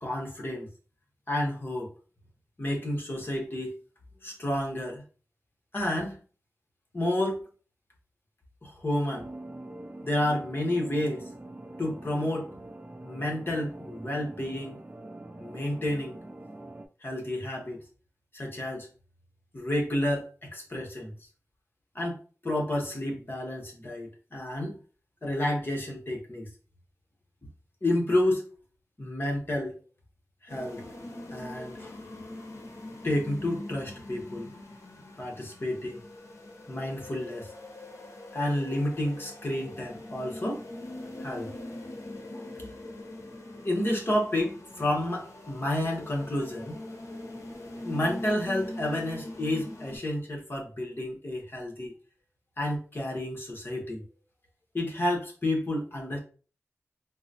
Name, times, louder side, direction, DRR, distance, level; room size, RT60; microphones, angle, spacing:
voice 1, 0.0-0.7 1.3-1.9 2.6-3.8 4.2-5.0 5.7-6.2 6.9-7.5 8.6-9.3 10.0-11.3 11.8-12.5 13.0-14.8 15.4-16.2 17.0-17.8 18.3-18.9 19.5-21.1 21.9-24.8 25.2-26.5 27.8-28.4 29.0-29.8 30.4-30.8 31.3-32.0 33.0-34.5 35.2-36.0 36.7-37.5 38.3-40.6 41.2-41.5 42.3-42.5 43.6-46.8 47.8-51.9 52.6-54.0 54.7-56.2, left 1 dB, 40° left, -1 dB, 1.0 m, -30 dB
sound 1, 9.1-16.9, right 1 dB, 35° right, 0.4 m, -44 dB
sound 2, 30.5-50.0, left 1 dB, 65° left, 0.8 m, -42 dB
3.7 x 2.0 x 2.8 m, 0.37 s
wide cardioid pair, 65°, 6 cm